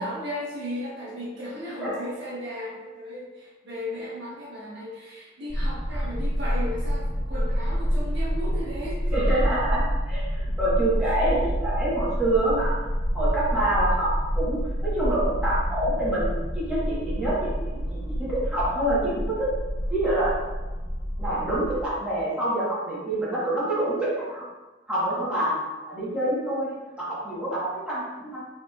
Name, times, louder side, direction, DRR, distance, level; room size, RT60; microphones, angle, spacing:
voice 1, 0.0-9.0 11.0-11.2, equal, 65° right, -7 dB, 1.3 m, -35 dB
sound 1, 5.5-21.9, equal, 50° left, 1.0 m, -28 dB
voice 2, 9.1-12.8 13.1-19.5 19.9-20.3 21.2-24.4 24.9-25.5 25.9-28.4, right 1 dB, 5° right, -10 dB, 1.2 m, -26 dB
4.8 x 3.2 x 2.4 m, 1.2 s
head